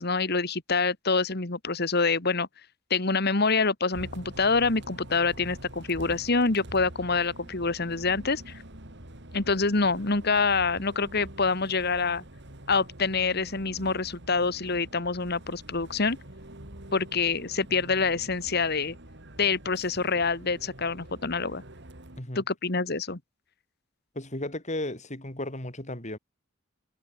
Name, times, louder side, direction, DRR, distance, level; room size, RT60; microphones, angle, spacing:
voice 1, 0.0-2.5 2.9-8.6 9.3-12.2 12.7-16.2 16.9-19.0 19.4-21.6 22.4-23.2, left 4 dB, 55° left, 2.0 m, -26 dB
Bus, 3.9-22.2, right 1 dB, 60° right, 3.9 m, -46 dB
voice 2, 24.1-26.2, left 1 dB, 35° left, 6.1 m, -34 dB
head